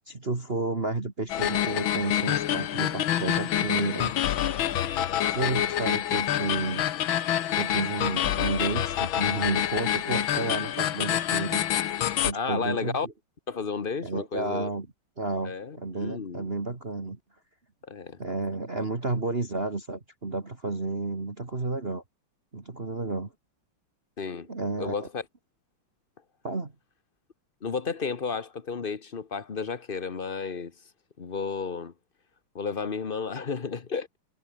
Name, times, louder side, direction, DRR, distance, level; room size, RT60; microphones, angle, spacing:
voice 1, 0.1-4.1 5.3-6.9 7.5-11.6 12.2-13.1 14.0-14.9 15.2-17.2 18.2-22.0 22.5-23.3 24.5-25.1 26.4-26.7, right 3 dB, 25° right, 2.5 m, -31 dB
sound 1, 1.3-12.3, left 11 dB, 70° left, 1.8 m, -27 dB
voice 2, 12.3-13.1 13.5-14.7 15.4-16.5 17.9-18.2 24.2-24.5 24.8-25.2 27.6-30.7 31.2-31.9 32.5-34.1, left 5 dB, 35° left, 1.0 m, -32 dB
omnidirectional pair, 2.4 m